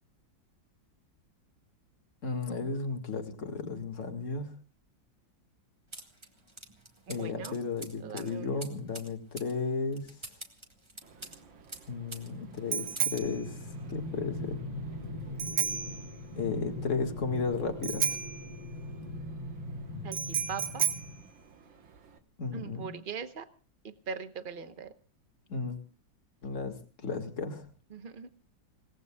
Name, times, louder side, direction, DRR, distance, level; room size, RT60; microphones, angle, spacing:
voice 1, 2.2-4.6 7.1-10.1 11.9-14.6 16.4-18.2 22.4-22.9 25.5-25.8 26.4-27.7, left 4 dB, 40° left, 5 dB, 2.1 m, -34 dB
sound 1, 5.9-12.3 12.6-13.3, right 2 dB, 15° right, 1.7 m, -47 dB
voice 2, 7.1-7.6 8.0-8.7 20.0-20.9 22.5-23.5 23.8-24.9 27.9-28.3, right 6 dB, 35° right, 10 dB, 0.9 m, -41 dB
Bicycle bell, 11.0-22.2, right 8 dB, 90° right, 2.1 m, -35 dB
sound 2, 13.2-21.2, left 1 dB, 75° left, 3.1 m, -41 dB
29.5 x 18.0 x 2.3 m, 0.37 s
omnidirectional pair, 2.1 m